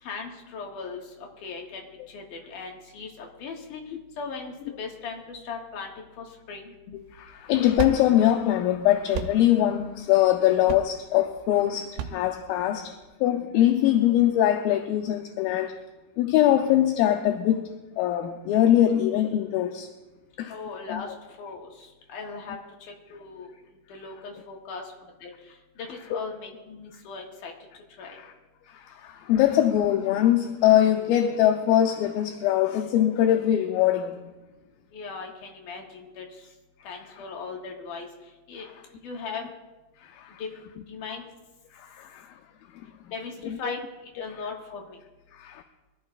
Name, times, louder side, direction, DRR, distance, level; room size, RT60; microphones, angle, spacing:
voice 1, 0.0-3.8 4.2-6.7 20.5-22.6 23.1-23.5 23.9-24.8 25.2-25.3 25.8-27.5 28.0-28.2 34.9-36.3 36.8-38.1 38.5-38.7 39.0-39.4 40.4-40.6 40.9-41.2 43.1-43.8 44.1-45.0, left 4 dB, 60° left, 2.9 m, -38 dB
voice 2, 6.9-15.7 16.2-17.7 18.0-19.9 20.4-20.5 20.9-21.0 26.1-26.2 28.0-28.3 28.7-34.3 40.0-40.4 41.7-42.3 43.4-43.8 45.3-45.6, left 12 dB, 80° left, 2.3 m, -23 dB
sound 1, 7.0-13.2, right 9 dB, 85° right, 2.7 m, -36 dB
24.0 x 14.0 x 2.4 m
omnidirectional pair, 4.5 m